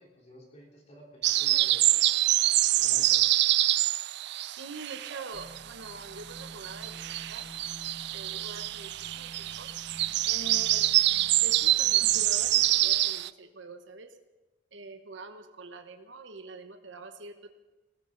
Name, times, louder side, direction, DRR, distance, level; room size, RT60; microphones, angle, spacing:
voice 1, 0.0-2.1 2.7-3.2, equal, 35° left, -2 dB, 3.9 m, -51 dB
sound 1, 1.2-5.6 5.8-13.3, right 15 dB, 65° right, 0.4 m, -26 dB
voice 2, 4.6-7.5 8.1-9.7 10.2-10.9 11.4-14.1 14.7-17.5, right 3 dB, 80° right, 6 dB, 1.0 m, -44 dB
sound 2, 5.3-12.9, equal, 60° left, 6.1 m, -50 dB
19.5 x 15.5 x 3.9 m, 1.2 s
head